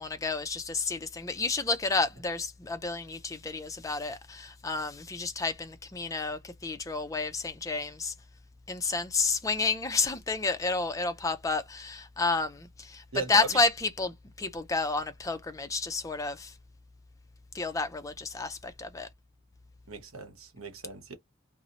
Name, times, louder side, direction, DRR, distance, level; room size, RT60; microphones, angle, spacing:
voice 1, 0.0-8.1 8.7-16.5 17.5-19.1, left 3 dB, 15° left, 0.4 m, -30 dB
voice 2, 13.1-13.5 19.9-21.2, right 4 dB, 85° right, 0.8 m, -38 dB
2.6 x 2.0 x 2.8 m
head